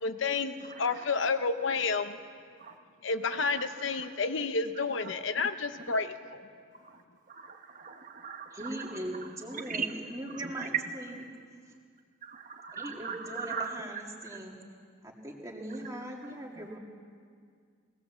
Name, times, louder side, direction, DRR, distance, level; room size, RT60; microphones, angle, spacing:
voice 1, 0.0-2.2 3.0-6.4, left 4 dB, 60° left, 10 dB, 0.8 m, -30 dB
voice 2, 0.6-1.1 2.6-2.7 3.3-3.7 4.0-4.1 5.0-5.1 5.9-6.0 6.8-7.0 7.3-10.9 12.2-14.4, right 6 dB, 40° right, 4 dB, 1.1 m, -39 dB
voice 3, 8.5-11.2 12.7-14.6 15.0-16.8, right 1 dB, 15° right, 0 dB, 2.3 m, -40 dB
19.0 x 18.5 x 7.4 m, 2.1 s
head